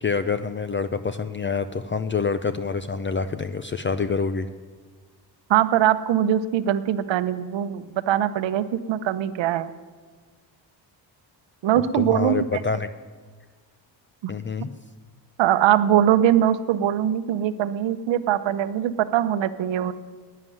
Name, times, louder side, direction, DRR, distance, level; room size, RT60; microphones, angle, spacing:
voice 1, 0.0-4.5 11.7-12.9 14.3-14.7, left 5 dB, 25° left, 11 dB, 0.5 m, -26 dB
voice 2, 5.5-9.7 11.6-12.5 14.2-14.3 15.4-19.9, right 11 dB, 75° right, 12 dB, 0.9 m, -22 dB
11.0 x 9.7 x 9.3 m, 1.5 s
cardioid pair, 110°, 45 cm